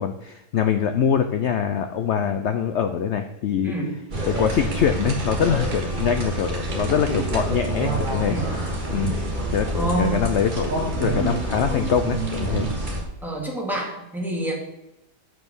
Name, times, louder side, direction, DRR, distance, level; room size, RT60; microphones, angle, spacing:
voice 1, 0.0-3.7 4.2-8.4 8.9-9.2 9.5-12.7, left 8 dB, 85° left, 8 dB, 0.6 m, -24 dB
sound 1, 4.1-13.0, right 2 dB, 30° right, 1.7 m, -27 dB
voice 2, 9.7-10.1 13.2-14.6, right 2 dB, ahead, -3 dB, 1.9 m, -27 dB
7.7 x 5.4 x 6.1 m, 0.90 s
omnidirectional pair, 1.8 m